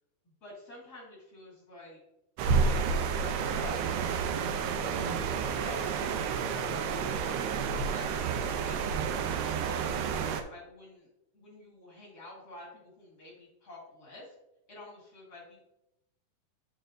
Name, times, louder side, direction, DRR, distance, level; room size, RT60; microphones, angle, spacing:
voice 1, 0.4-2.0 3.2-7.3 7.7-9.0 9.6-11.1 11.3-14.3 14.7-15.6, left 1 dB, 35° left, -4 dB, 1.6 m, -49 dB
sound 1, 2.4-10.4, right 5 dB, 80° right, 2.6 m, -30 dB
11.5 x 4.4 x 2.5 m, 0.89 s
omnidirectional pair, 4.7 m